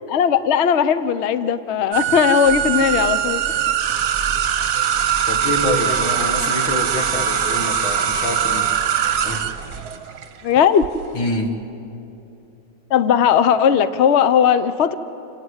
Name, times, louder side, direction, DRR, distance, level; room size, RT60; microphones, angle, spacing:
voice 1, 0.1-3.4 10.4-10.8 12.9-14.9, left 8 dB, 60° left, 13 dB, 0.7 m, -17 dB
sound 1, 1.9-10.9, right 9 dB, 55° right, 1.4 m, -21 dB
sound 2, 2.4-9.9, right 4 dB, 30° right, 1.5 m, -38 dB
voice 2, 5.3-8.7 9.2-9.4 11.1-11.5, left 1 dB, 90° left, 3 dB, 2.7 m, -25 dB
28.5 x 17.5 x 8.1 m, 2.8 s
omnidirectional pair, 2.1 m